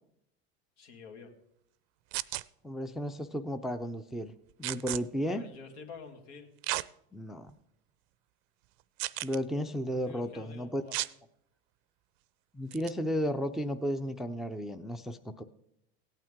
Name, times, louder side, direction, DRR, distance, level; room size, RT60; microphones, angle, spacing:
voice 1, 0.8-1.3 5.3-6.5 9.9-11.0, left 5 dB, 80° left, 4 dB, 2.3 m, -48 dB
sound 1, 2.1-2.4 4.6-5.0 6.6-6.9 7.5-7.6 9.0-9.4 10.9-11.1 12.7-12.9, right 20 dB, 65° right, 0.5 m, -33 dB
voice 2, 2.6-4.3 4.6-5.4 7.1-7.5 9.2-10.8 12.5-15.4, equal, ahead, 10 dB, 0.4 m, -33 dB
17.0 x 9.1 x 3.6 m, 0.75 s
supercardioid pair, 115°, 33 cm